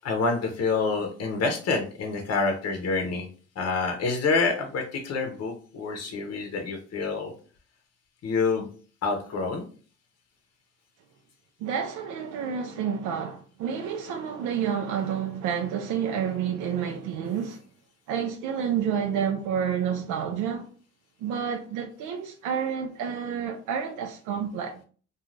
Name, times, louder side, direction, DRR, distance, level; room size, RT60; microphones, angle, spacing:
voice 1, 0.0-3.3 3.6-7.3 8.2-8.7 9.0-9.6, left 4 dB, 55° left, 0.7 m, -27 dB
voice 2, 11.6-17.6 18.1-20.7 21.2-24.8, right 7 dB, 85° right, 0.5 m, -29 dB
2.5 x 2.3 x 3.1 m
cardioid pair, 90°, 30 cm